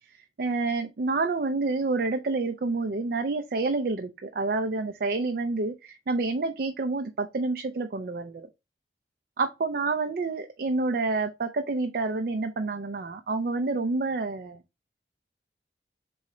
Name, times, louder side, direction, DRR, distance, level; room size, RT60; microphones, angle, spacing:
voice 1, 0.4-8.5 9.4-14.6, right 3 dB, 55° right, 0.4 m, -28 dB
4.3 x 3.1 x 3.7 m
head